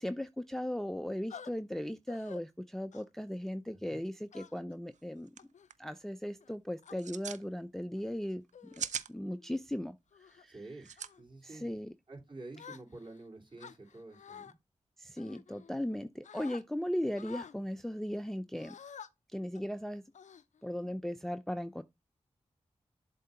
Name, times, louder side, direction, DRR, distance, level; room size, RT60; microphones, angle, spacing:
voice 1, 0.0-5.3 5.8-8.4 9.1-10.0 10.3-10.5 11.5-11.9 15.0-18.8 19.3-20.0 20.6-21.8, left 1 dB, 5° left, 0.4 m, -37 dB
sound 1, 1.3-1.5 2.1-2.4 2.9-3.2 4.3-4.8 5.4-5.7 6.4-7.0 7.8-8.0 8.5-8.9 9.4-9.6 10.1-10.4 11.0-11.2 12.6-13.2 13.6-14.5 15.2-15.9 16.2-16.6 17.2-17.6 18.6-19.1 19.6-19.7 20.1-20.8, left 7 dB, 75° left, 0.5 m, -50 dB
voice 2, 3.7-4.1 10.5-10.9 11.2-11.8 12.1-14.6, right 2 dB, 40° right, 3.4 m, -49 dB
sound 2, 4.9-5.0 5.3-5.4 5.7-6.0 6.9-7.4 8.5-9.1 10.8-11.1, right 7 dB, 75° right, 0.4 m, -39 dB
7.5 x 2.8 x 5.6 m
cardioid pair, 45°, 12 cm